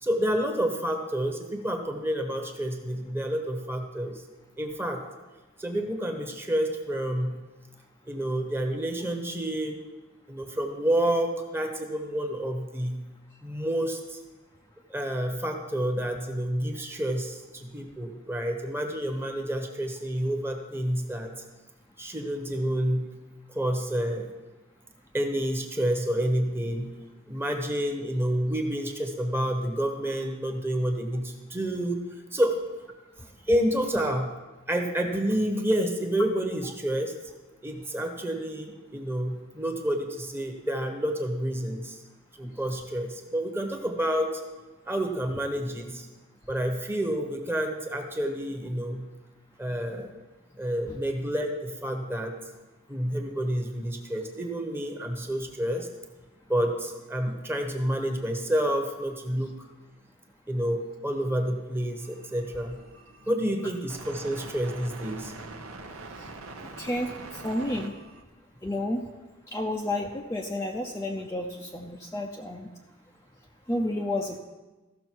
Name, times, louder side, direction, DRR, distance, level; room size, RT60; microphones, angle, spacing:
voice 1, 0.0-4.2 4.6-5.0 5.6-7.3 8.1-9.7 10.3-13.0 13.4-14.2 14.9-21.3 22.0-23.1 23.5-24.3 25.1-26.9 27.3-32.0 32.3-32.6 33.4-34.3 34.7-37.1 37.6-42.0 42.4-44.3 44.9-46.1 46.5-49.1 49.6-50.1 50.6-52.3 52.9-55.9 56.5-59.5 60.5-62.8 63.3-65.3, right 1 dB, 10° right, 3 dB, 1.0 m, -29 dB
sound 1, 62.0-68.2, right 3 dB, 85° right, 0.9 m, -44 dB
voice 2, 66.8-67.9 68.6-69.0 69.5-72.7 73.7-74.4, left 1 dB, 15° left, 0 dB, 0.5 m, -31 dB
15.0 x 6.4 x 4.6 m, 1.2 s
head